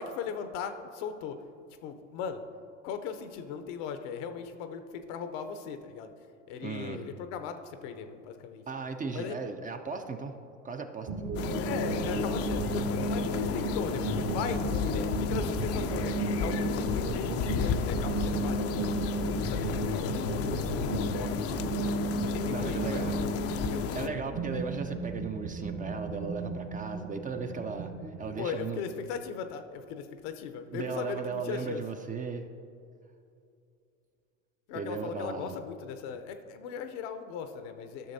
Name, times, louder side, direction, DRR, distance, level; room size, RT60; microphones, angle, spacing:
voice 1, 0.0-1.4 1.8-2.4 2.8-6.1 6.5-8.6 9.1-9.4 11.6-19.0 19.4-21.6 22.2-23.3 23.6-24.4 28.4-31.8 34.7-38.1, left 6 dB, 65° left, 8 dB, 0.8 m, -38 dB
voice 2, 6.6-7.0 8.7-10.4 10.6-11.1 22.5-23.1 23.9-28.8 30.7-32.4 34.7-35.6, right 5 dB, 20° right, 6 dB, 0.5 m, -36 dB
sound 1, 11.1-28.4, right 3 dB, 50° right, 1.3 m, -34 dB
sound 2, 11.3-24.1, left 8 dB, 40° left, 0.5 m, -33 dB
13.0 x 6.4 x 2.7 m, 2.5 s
hypercardioid pair, 80°, 38 cm